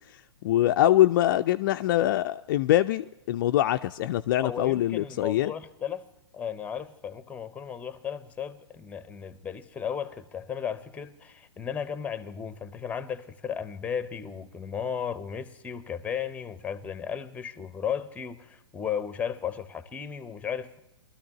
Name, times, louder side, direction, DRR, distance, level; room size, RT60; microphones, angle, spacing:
voice 1, 0.4-5.5, left 13 dB, 45° left, 0.4 m, -23 dB
voice 2, 4.4-6.1 6.3-20.8, left 7 dB, 10° left, 0.7 m, -35 dB
22.0 x 13.0 x 2.9 m
hypercardioid pair, 120°, 14 cm